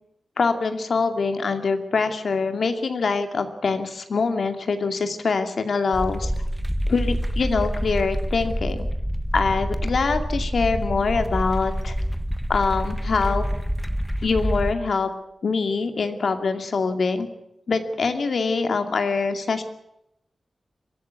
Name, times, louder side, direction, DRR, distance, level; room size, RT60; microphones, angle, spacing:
voice 1, 0.4-6.3 6.9-8.9 9.3-12.0 12.5-13.5 14.2-15.1 15.4-17.3 17.7-19.6, left 4 dB, 60° left, 7 dB, 2.4 m, -24 dB
sound 1, 5.9-14.7, equal, ahead, 1.4 m, -27 dB
23.5 x 16.0 x 9.5 m, 0.85 s
wide cardioid pair, 170°, 0 cm